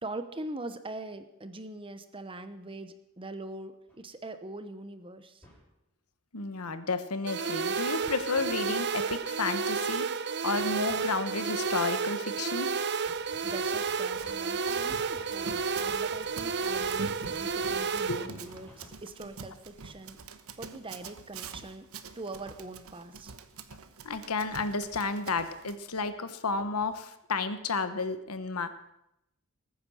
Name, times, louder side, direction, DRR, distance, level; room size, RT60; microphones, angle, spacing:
voice 1, 0.0-5.4 13.4-20.2 20.5-21.9 22.2-23.3, right 2 dB, 25° right, 10 dB, 0.9 m, -42 dB
sound 1, 3.9-4.0 5.4-5.6 8.0-8.5 10.6-11.0 13.0-19.0, equal, 5° left, 5.5 m, -54 dB
voice 2, 6.3-10.0 10.4-12.7 18.1-18.2 24.0-28.9, left 4 dB, 80° left, 11 dB, 1.1 m, -32 dB
sound 2, 7.3-18.3, right 5 dB, 50° right, 0.7 m, -31 dB
Run, 14.1-25.8, right 4 dB, 70° right, 1.1 m, -46 dB
20.0 x 9.6 x 6.4 m, 0.85 s
head